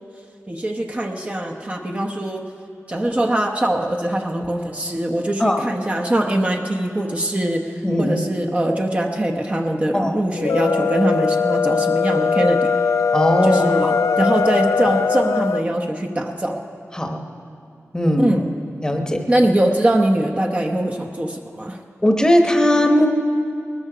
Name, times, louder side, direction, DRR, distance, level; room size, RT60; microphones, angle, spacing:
voice 1, 0.5-2.4 2.9-7.7 8.0-12.7 13.4-16.6 18.2-18.4 19.3-21.8, right 1 dB, 25° right, 1 dB, 0.8 m, -22 dB
voice 2, 7.8-8.2 9.9-10.2 13.1-13.9 16.9-17.2 17.9-18.3 18.8-19.3 22.0-23.1, equal, 15° left, 4 dB, 1.0 m, -18 dB
sound 1, 10.4-15.7, left 6 dB, 85° left, 0.4 m, -20 dB
19.5 x 13.5 x 5.0 m, 2.4 s
wide cardioid pair, 115°, 5 cm